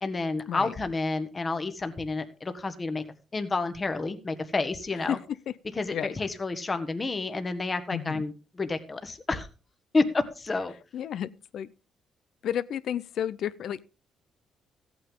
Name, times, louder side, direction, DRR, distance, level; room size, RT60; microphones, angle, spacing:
voice 1, 0.0-3.0 3.3-5.2 5.8-8.3 8.6-9.5 9.9-10.7, left 3 dB, 30° left, 1.3 m, -29 dB
voice 2, 7.9-8.3 10.9-11.7 12.4-13.8, left 10 dB, 70° left, 0.5 m, -32 dB
14.5 x 8.7 x 3.7 m
cardioid pair, 90°, 0 cm